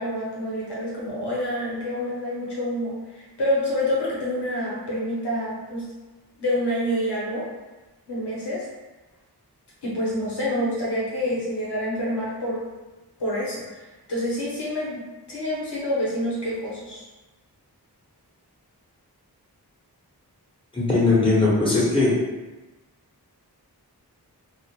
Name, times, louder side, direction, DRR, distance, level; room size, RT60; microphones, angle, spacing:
voice 1, 0.0-5.8 6.4-7.5 8.1-8.6 9.8-12.6 13.2-15.0 15.3-17.0, left 1 dB, 85° left, -6 dB, 0.9 m, -27 dB
voice 2, 20.7-22.1, left 3 dB, 15° left, -6 dB, 0.9 m, -19 dB
2.4 x 2.1 x 2.8 m, 1.1 s
wide cardioid pair, 50°, 39 cm